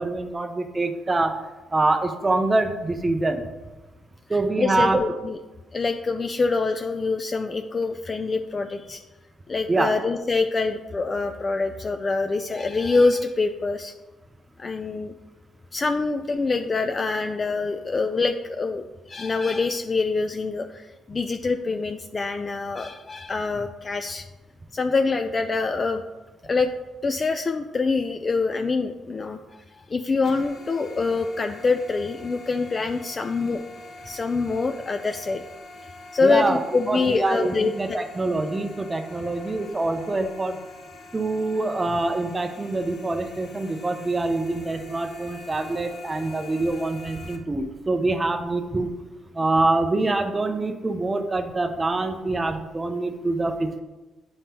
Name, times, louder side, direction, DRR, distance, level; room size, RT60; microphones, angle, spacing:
voice 1, 0.0-1.4 1.7-3.5 4.3-5.0 9.7-9.9 36.2-36.6 36.9-40.6 41.1-48.9 49.3-53.8, right 2 dB, 25° right, 6 dB, 0.5 m, -25 dB
voice 2, 4.6-5.4 5.7-9.0 9.5-13.9 14.6-15.1 15.7-24.2 24.7-26.0 26.4-26.7 27.0-33.6 34.0-35.4 36.1-38.0, left 4 dB, 35° left, 6 dB, 0.3 m, -25 dB
sound 1, 30.2-47.4, left 2 dB, 60° left, 0.8 m, -44 dB
9.7 x 3.6 x 2.8 m, 1.1 s
cardioid pair, 90°, 0 cm